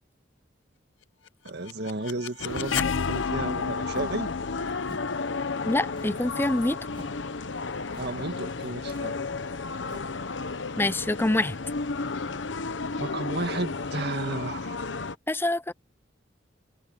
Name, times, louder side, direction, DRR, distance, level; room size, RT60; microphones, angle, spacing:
sound 1, 1.3-7.1, left 6 dB, 90° left, 0.6 m, -33 dB
voice 1, 1.4-2.8 3.1-4.3 8.0-9.2 13.0-14.8, right 2 dB, 60° right, 2.0 m, -33 dB
sound 2, 2.4-15.2, left 3 dB, 70° left, 1.0 m, -33 dB
sound 3, 3.9-4.3 4.8-5.2 5.9-6.3 6.9-7.2 7.9-8.3 8.8-9.2 9.8-10.2, right 1 dB, 25° right, 2.3 m, -49 dB
voice 2, 5.7-6.8 10.8-11.6 15.3-15.7, left 2 dB, 10° left, 0.5 m, -25 dB
head